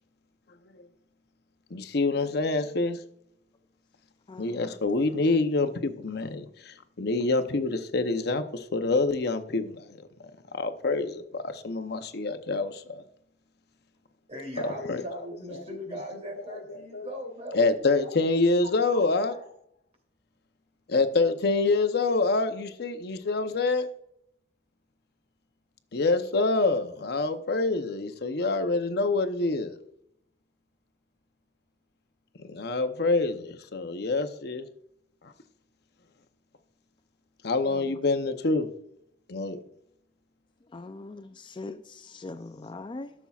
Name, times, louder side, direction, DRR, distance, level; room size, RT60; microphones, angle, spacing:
voice 1, 1.7-3.0 4.4-10.0 10.5-13.0 14.8-15.0 15.5-15.6 16.5-17.1 17.5-19.3 20.9-23.9 25.9-29.8 32.4-34.7 35.2-35.3 37.4-38.7 39.3-39.6, left 3 dB, 65° left, 0.8 m, -26 dB
voice 2, 4.3-4.6 37.7-37.9 40.7-43.1, left 3 dB, 30° left, 0.4 m, -41 dB
voice 3, 14.3-18.1 18.9-19.5, equal, 40° right, 3.0 m, -39 dB
14.5 x 7.1 x 2.4 m
head